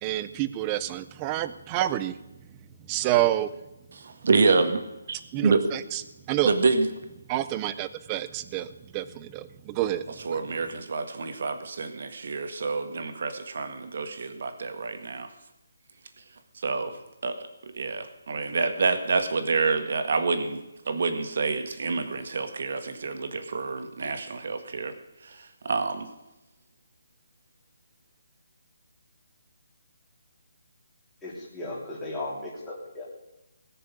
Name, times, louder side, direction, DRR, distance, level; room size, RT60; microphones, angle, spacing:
voice 1, 0.0-2.1 2.9-3.5 5.3-6.0 6.3-6.5 7.3-10.0, right 14 dB, 15° right, 14 dB, 0.5 m, -28 dB
voice 2, 3.9-4.8 5.1-5.6 6.4-6.9 10.2-15.3 16.5-24.9 25.2-26.1, right 4 dB, 50° right, 8 dB, 1.8 m, -27 dB
voice 3, 31.2-33.0, left 2 dB, 5° left, -7 dB, 3.2 m, -36 dB
19.0 x 6.8 x 8.3 m, 0.96 s
hypercardioid pair, 175°, 0 cm